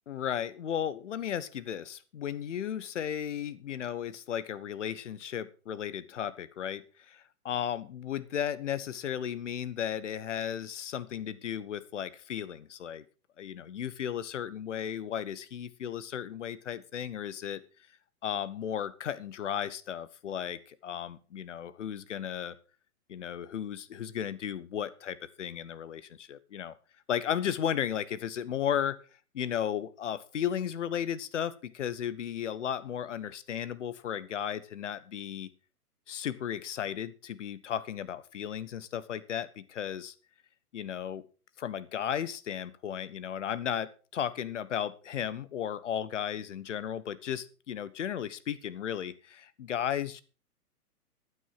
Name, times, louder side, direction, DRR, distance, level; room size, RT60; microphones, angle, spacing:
voice 1, 0.1-13.0 13.4-17.6 18.2-22.5 23.1-26.7 27.1-29.0 29.3-35.5 36.1-40.1 40.7-41.2 41.6-50.2, left 9 dB, 50° left, 16 dB, 1.3 m, -35 dB
12.5 x 9.5 x 5.7 m, 0.36 s
figure-of-eight pair, 125°, 46 cm